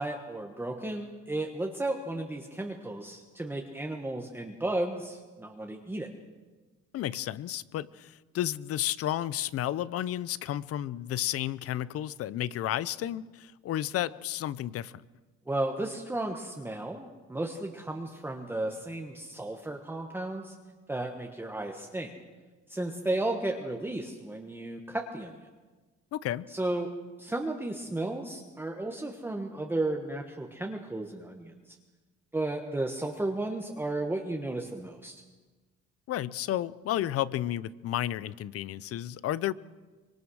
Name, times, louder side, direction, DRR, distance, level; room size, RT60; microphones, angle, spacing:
voice 1, 0.0-6.1 15.5-20.5 20.9-22.1 22.7-25.5 26.5-26.9 27.2-31.8 32.3-35.2, right 2 dB, 5° right, 2 dB, 1.3 m, -34 dB
voice 2, 6.9-15.0 26.1-26.5 36.1-39.5, left 12 dB, 50° left, 19 dB, 0.7 m, -32 dB
25.0 x 23.5 x 6.4 m, 1.3 s
cardioid pair, 160°, 29 cm